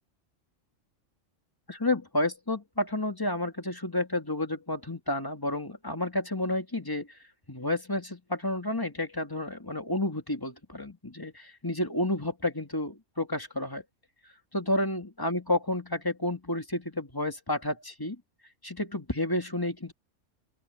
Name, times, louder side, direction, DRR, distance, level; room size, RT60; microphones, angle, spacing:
voice 1, 1.7-7.1 7.5-13.8 14.5-18.2 18.6-19.9, left 1 dB, 15° left, 2.0 m, -30 dB
open air
omnidirectional pair, 1.3 m